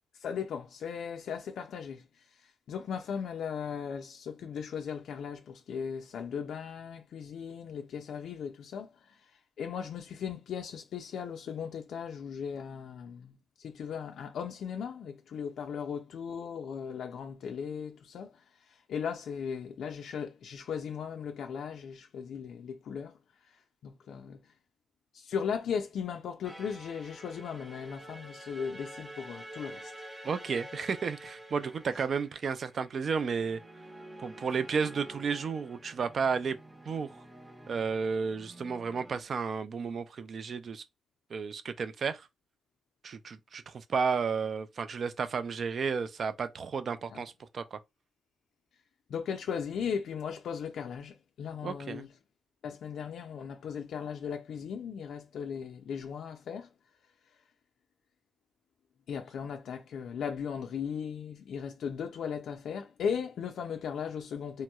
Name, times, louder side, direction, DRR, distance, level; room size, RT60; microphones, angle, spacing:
voice 1, 0.1-9.2 9.6-23.2 23.8-24.4 25.1-29.9 47.1-47.2 49.1-52.1 52.6-56.7 59.1-64.6, left 7 dB, 70° left, 0.4 m, -37 dB
sound 1, 26.4-39.2, right 1 dB, 20° right, 0.9 m, -49 dB
voice 2, 30.2-33.6 34.2-36.6 36.9-37.2 37.7-40.8 41.3-42.3 43.0-47.8 51.6-52.1, right 5 dB, 45° right, 0.3 m, -32 dB
2.9 x 2.9 x 2.3 m
cardioid pair, 130°, 0 cm